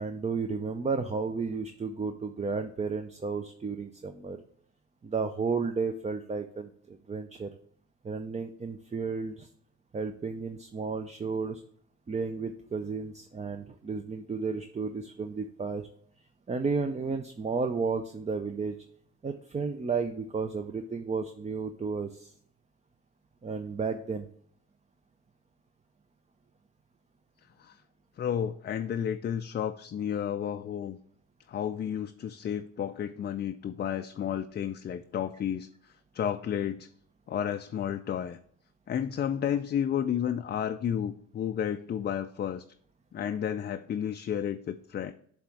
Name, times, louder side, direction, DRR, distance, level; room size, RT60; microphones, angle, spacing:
voice 1, 0.0-4.4 5.0-7.5 8.0-9.5 9.9-11.6 12.1-15.9 16.5-18.8 19.2-22.3 23.4-24.3, right 4 dB, 25° right, 7 dB, 0.5 m, -33 dB
voice 2, 28.2-31.0 31.5-36.9 37.3-38.4 38.9-42.6 43.1-45.1, left 9 dB, 35° left, 7 dB, 0.4 m, -32 dB
7.5 x 3.6 x 4.5 m, 0.62 s
cardioid pair, 90°, 30 cm